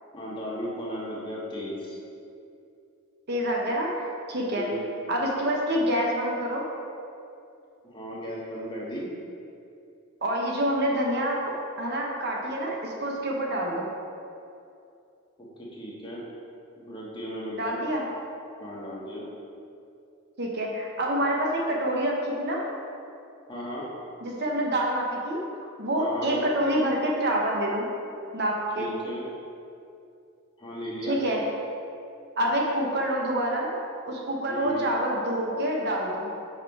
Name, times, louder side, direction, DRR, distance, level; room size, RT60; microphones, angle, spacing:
voice 1, 0.1-2.0 4.5-4.9 7.8-9.1 15.4-16.2 16.8-17.7 18.6-19.2 23.5-23.9 26.0-26.5 28.8-29.2 30.6-31.2 34.5-34.9, equal, 25° left, -6 dB, 1.5 m, -35 dB
voice 2, 3.3-4.7 5.1-6.7 10.2-11.4 11.8-13.9 17.5-18.0 20.4-22.7 24.2-27.9 28.3-28.9 31.0-31.4 32.4-33.7 34.1-36.3, right 1 dB, 50° right, -1 dB, 1.0 m, -27 dB
6.2 x 5.5 x 4.7 m, 2.6 s
head